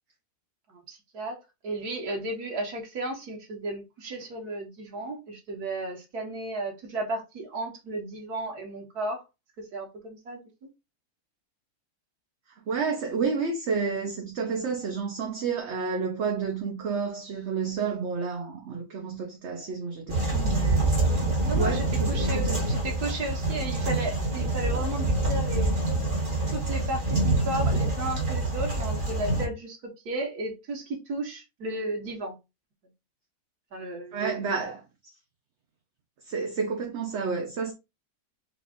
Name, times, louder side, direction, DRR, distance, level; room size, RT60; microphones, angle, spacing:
voice 1, 0.7-1.4 1.6-9.2 9.6-10.7 21.4-25.8 26.5-32.4 33.7-34.5, right 1 dB, 80° right, 1.9 m, -34 dB
voice 2, 12.7-20.9 21.6-22.6 34.1-35.1 36.2-37.7, right 5 dB, 55° right, 0.9 m, -30 dB
sound 1, 20.1-29.5, right 2 dB, 35° right, 1.6 m, -26 dB
4.8 x 2.4 x 3.7 m
omnidirectional pair, 1.6 m